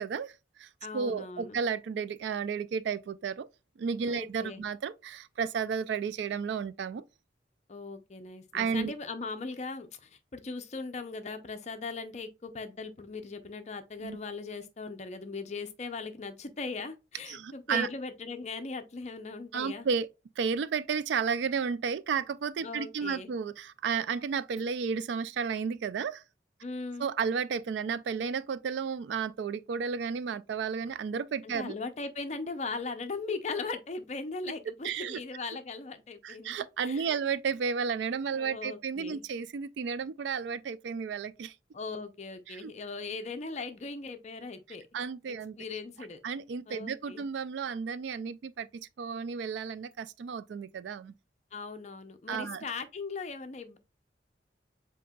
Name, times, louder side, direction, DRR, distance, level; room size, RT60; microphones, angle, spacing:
voice 1, 0.0-3.5 3.8-7.0 8.5-8.9 14.0-14.2 17.3-17.9 19.5-20.1 20.4-26.2 27.0-31.7 34.8-35.2 36.2-41.5 42.5-42.7 44.9-45.7 46.2-51.1 52.3-52.6, right 6 dB, 75° right, 0.3 m, -33 dB
voice 2, 0.8-1.6 4.1-4.6 7.7-19.9 22.6-23.3 26.6-27.1 31.4-36.6 36.8-37.2 38.3-39.2 41.7-44.9 45.3-46.2 46.7-47.2 51.5-53.8, left 4 dB, 40° left, 0.5 m, -39 dB
7.6 x 2.8 x 2.3 m
head